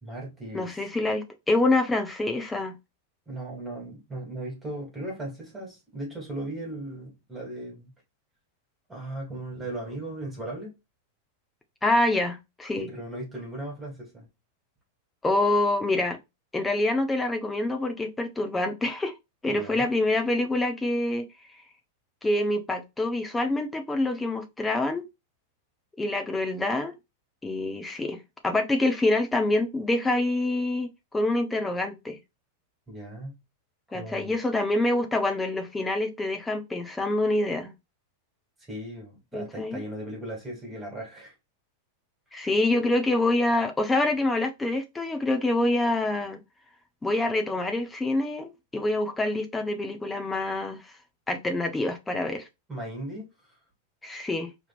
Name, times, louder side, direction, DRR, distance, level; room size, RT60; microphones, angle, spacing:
voice 1, 0.0-0.7 3.3-7.9 8.9-10.7 12.8-14.2 19.5-19.9 32.9-33.4 33.9-34.4 38.7-41.3 52.7-53.3, right 1 dB, 15° right, 3.0 m, -37 dB
voice 2, 0.5-2.7 11.8-12.9 15.2-16.2 16.5-19.1 19.4-21.2 22.2-25.0 26.0-26.9 27.4-32.2 33.9-37.7 39.3-39.8 42.3-46.4 47.0-50.9 51.3-52.5 54.0-54.5, left 2 dB, 10° left, 1.2 m, -26 dB
4.8 x 3.5 x 2.6 m
hypercardioid pair, 95°, 0 cm